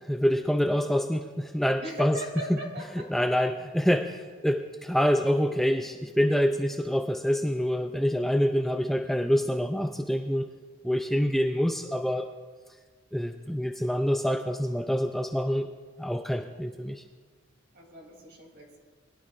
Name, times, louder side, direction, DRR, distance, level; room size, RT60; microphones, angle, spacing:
voice 1, 0.0-2.2 3.1-10.5 10.8-12.3 13.1-15.7 16.0-17.0, equal, ahead, 5 dB, 0.4 m, -26 dB
voice 2, 1.8-3.2 17.7-18.8, right 1 dB, 55° right, -1 dB, 3.1 m, -40 dB
21.0 x 11.5 x 2.5 m, 1.5 s
head